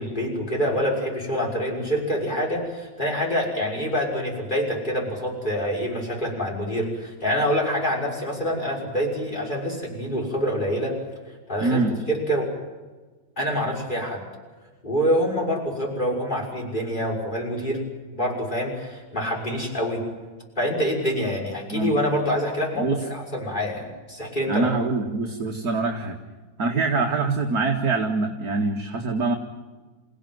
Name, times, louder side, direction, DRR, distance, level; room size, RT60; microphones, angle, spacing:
voice 1, 0.0-10.9 11.5-11.8 12.1-12.5 13.4-14.2 14.8-17.8 18.1-20.0 20.6-24.7, equal, 20° left, -1 dB, 6.3 m, -26 dB
voice 2, 11.6-11.9 21.7-22.0 22.8-23.0 24.5-26.2 26.6-29.3, right 3 dB, 50° right, 1 dB, 2.4 m, -24 dB
29.5 x 16.5 x 9.4 m, 1.3 s
omnidirectional pair, 2.2 m